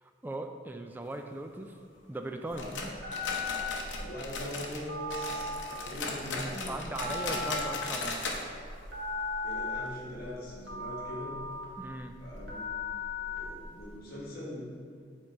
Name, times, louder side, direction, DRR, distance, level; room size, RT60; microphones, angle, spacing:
voice 1, 0.0-1.8 2.1-2.9 6.5-8.2 11.8-12.1, right 1 dB, 10° right, 5 dB, 0.3 m, -39 dB
Telephone, 2.5-13.9, left 3 dB, 80° right, 1.5 m, -38 dB
sound 1, 2.6-4.8 5.1-8.4 8.7-8.8 9.2-9.3 9.9-10.0, left 3 dB, 70° left, 0.8 m, -37 dB
voice 2, 3.9-6.8 7.2-7.7 9.4-11.4 12.2-12.8 13.1-14.7, left 1 dB, 50° left, -5 dB, 1.5 m, -42 dB
7.6 x 3.7 x 4.1 m, 2.3 s
head